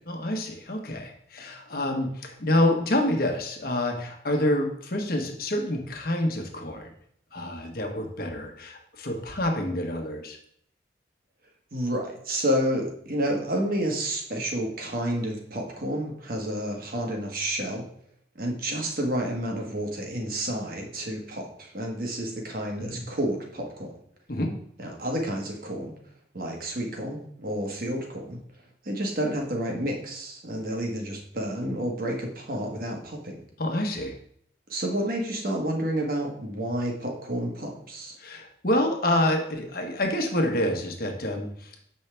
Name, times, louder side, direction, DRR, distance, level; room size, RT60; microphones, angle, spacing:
voice 1, 0.1-6.9 7.3-10.4 22.8-23.0 24.3-24.5 33.6-34.1 38.2-41.7, left 1 dB, 50° left, 3 dB, 1.1 m, -27 dB
voice 2, 11.7-17.9 18.4-23.9 24.8-25.9 26.3-28.4 28.8-33.4 34.7-38.2, right 1 dB, 50° right, 1 dB, 1.3 m, -30 dB
7.2 x 5.5 x 3.3 m, 0.67 s
head